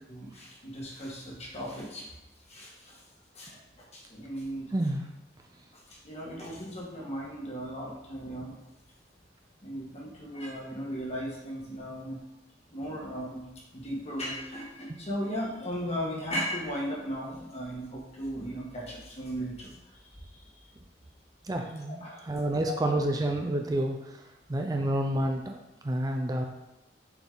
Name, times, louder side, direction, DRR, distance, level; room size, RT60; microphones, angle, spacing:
voice 1, 0.1-2.1 2.5-3.0 3.3-3.6 3.9-4.7 5.7-8.6 9.6-12.2 12.7-13.4 13.7-19.7 22.0-22.3 22.7-22.8, equal, 40° left, -3 dB, 1.6 m, -36 dB
voice 2, 4.7-5.1 21.4-24.2 24.5-25.6 25.8-26.5, right 1 dB, 20° right, 3 dB, 0.4 m, -29 dB
6.9 x 4.1 x 3.9 m, 0.94 s
head